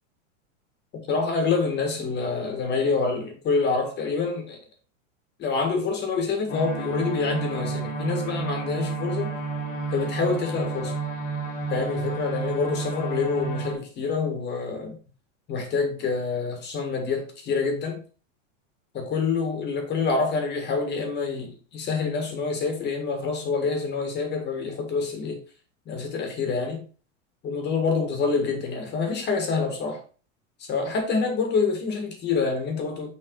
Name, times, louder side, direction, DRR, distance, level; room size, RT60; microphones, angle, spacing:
voice 1, 1.1-4.6 5.4-9.3 9.9-10.9 11.7-15.0 15.5-18.0 18.9-25.4 25.9-26.8 27.4-30.0 30.6-33.1, left 4 dB, 25° left, 1.7 m, -27 dB
sound 1, 6.5-13.7, right 4 dB, 85° left, 3.1 m, -30 dB
6.4 x 4.2 x 4.7 m
supercardioid pair, 150°, 39 cm